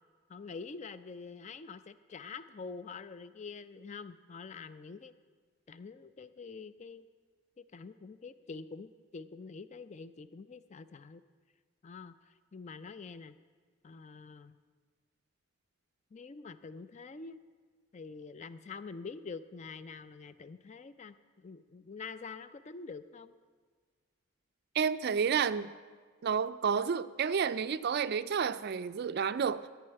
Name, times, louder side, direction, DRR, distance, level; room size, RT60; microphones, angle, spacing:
voice 1, 0.3-5.1 5.7-7.0 7.6-11.2 11.8-13.3 13.8-14.6 16.1-17.4 17.9-23.3, left 4 dB, 35° left, 13 dB, 0.4 m, -46 dB
voice 2, 24.7-25.7 26.2-29.7, right 6 dB, 50° right, 14 dB, 0.3 m, -30 dB
13.0 x 4.7 x 8.8 m, 1.5 s
head